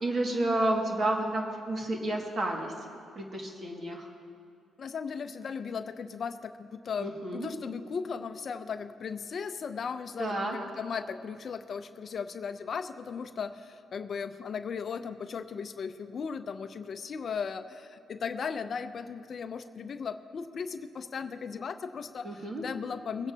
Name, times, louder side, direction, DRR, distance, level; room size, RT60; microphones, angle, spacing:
voice 1, 0.0-2.7 3.2-4.1 7.0-7.5 10.2-10.6 22.2-22.6, right 1 dB, 45° right, 0 dB, 2.0 m, -30 dB
voice 2, 4.8-23.3, left 6 dB, 50° left, 9 dB, 0.6 m, -37 dB
23.0 x 9.4 x 2.8 m, 2.3 s
cardioid pair, 90°, 0 cm